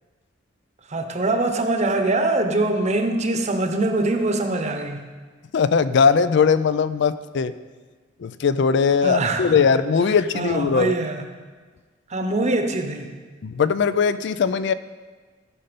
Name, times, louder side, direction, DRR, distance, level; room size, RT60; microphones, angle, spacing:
voice 1, 0.9-5.0 9.0-9.7 10.3-11.2 12.1-13.1, right 2 dB, 35° right, 5 dB, 0.9 m, -23 dB
voice 2, 5.5-7.5 8.2-10.9 13.4-14.7, left 6 dB, 60° left, 14 dB, 0.4 m, -19 dB
15.5 x 5.5 x 5.2 m, 1.4 s
head